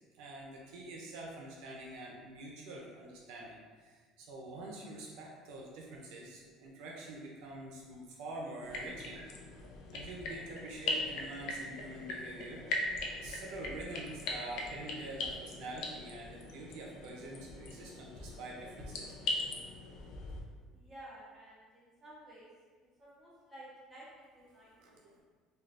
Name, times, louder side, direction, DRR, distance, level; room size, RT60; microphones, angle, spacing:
voice 1, 0.1-9.2 9.9-12.6 13.2-19.1 24.8-25.2, right 2 dB, 75° right, -1 dB, 0.5 m, -46 dB
sound 1, 8.6-20.4, left 2 dB, 60° left, 0.4 m, -40 dB
voice 2, 20.7-22.5 23.0-25.2, right 1 dB, 5° right, -9 dB, 1.0 m, -53 dB
3.2 x 2.2 x 2.5 m, 1.5 s
cardioid pair, 140°, 0 cm